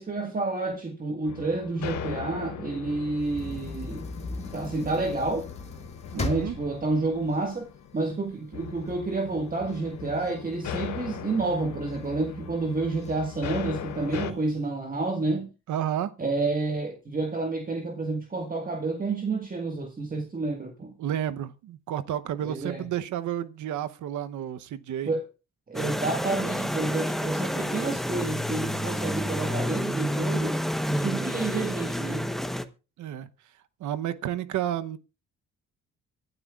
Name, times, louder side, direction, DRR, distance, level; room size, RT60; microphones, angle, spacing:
voice 1, 0.0-4.0 4.5-5.5 6.1-7.7 7.9-15.5 16.2-20.9 22.4-22.8 25.0-25.2 25.7-30.6 30.8-32.3, right 3 dB, 30° right, 1.7 m, -29 dB
sound 1, 1.2-14.3, left 8 dB, 65° left, 1.3 m, -39 dB
sound 2, 3.2-8.4 8.9-9.0 9.3-11.3 11.9-12.4 13.0-13.1 13.4-13.5 14.0-14.6, left 3 dB, 20° left, 1.9 m, -38 dB
voice 2, 6.1-6.6 15.7-16.1 21.0-25.1 33.0-33.3 33.8-35.0, right 11 dB, 75° right, 0.9 m, -31 dB
sound 3, 25.7-32.6, equal, ahead, 1.0 m, -29 dB
24.5 x 12.0 x 2.4 m
cardioid pair, 90°, 30 cm